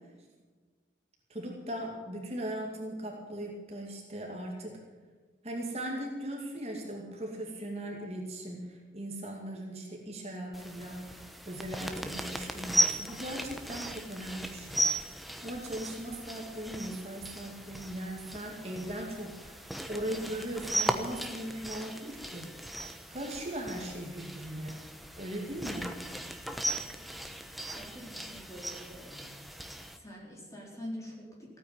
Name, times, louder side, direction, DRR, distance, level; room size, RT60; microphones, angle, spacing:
voice 1, 1.3-4.8 5.4-22.5 23.1-24.9 25.2-26.0, right 1 dB, 35° right, 0 dB, 2.5 m, -39 dB
sound 1, 10.5-30.0, equal, ahead, 0.9 m, -37 dB
voice 2, 27.7-29.3 30.0-31.6, equal, 20° left, -3 dB, 4.2 m, -45 dB
16.0 x 9.3 x 9.2 m, 1.4 s
head